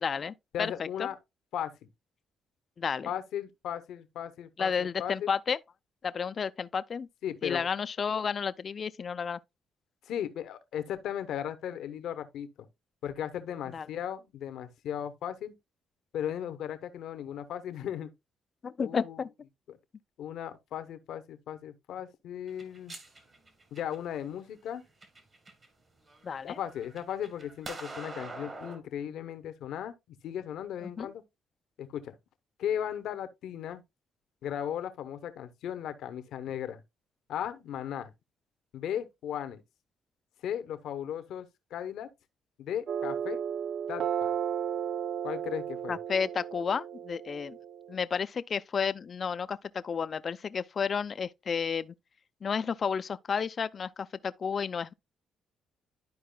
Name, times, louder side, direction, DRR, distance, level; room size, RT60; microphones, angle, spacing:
voice 1, 0.0-0.7 2.8-3.1 4.6-5.6 6.0-7.1 7.4-9.4 13.7-13.9 18.6-19.3 26.2-26.6 30.8-31.1 45.9-47.6 47.9-51.9 52.4-54.9, left 6 dB, 45° left, 0.4 m, -32 dB
voice 2, 0.5-1.2 1.5-1.9 3.1-5.3 7.2-7.7 10.0-12.5 13.0-15.5 16.1-18.1 18.8-19.2 19.7-19.8 20.2-22.9 23.7-24.8 26.4-30.0 30.2-31.2 31.8-32.2 32.6-33.8 34.4-36.8 37.3-38.1 38.7-39.6 40.4-42.1 42.6-43.4 43.9-44.3 45.2-46.0, left 10 dB, 80° left, 0.8 m, -36 dB
sound 1, 22.5-24.2 24.8-25.7 26.1-28.8, right 2 dB, 40° right, 2.0 m, -44 dB
sound 2, 42.9-47.9, right 8 dB, 70° right, 0.4 m, -34 dB
12.0 x 4.7 x 2.2 m
cardioid pair, 90°, 0 cm